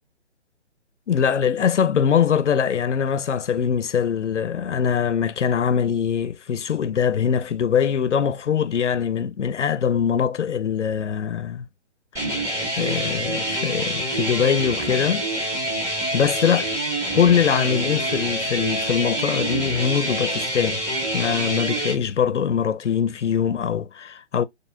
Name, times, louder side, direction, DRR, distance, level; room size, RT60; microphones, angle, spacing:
voice 1, 1.1-11.6 12.8-15.2 16.1-16.7 17.1-20.8 21.1-24.4, left 7 dB, 80° left, 0.7 m, -22 dB
sound 1, 12.1-21.9, right 1 dB, 10° right, 1.5 m, -26 dB
4.0 x 3.5 x 3.6 m
figure-of-eight pair, 145°, 35 cm